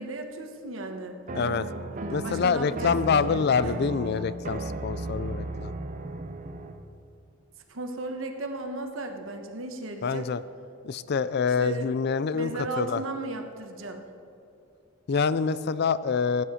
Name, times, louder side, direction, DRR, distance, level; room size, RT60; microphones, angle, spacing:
voice 1, 0.0-1.2 2.0-2.9 3.3-3.7 7.7-10.3 11.6-11.9 12.3-14.0, right 2 dB, 70° right, 5 dB, 1.3 m, -35 dB
voice 2, 1.3-1.7 2.1-5.7 10.0-10.4 10.8-12.5 12.8-13.0 15.1-16.4, left 5 dB, 50° left, 15 dB, 0.4 m, -26 dB
sound 1, 1.3-6.8, right 2 dB, 40° right, 0.7 m, -35 dB
17.0 x 9.7 x 5.7 m, 2.6 s
head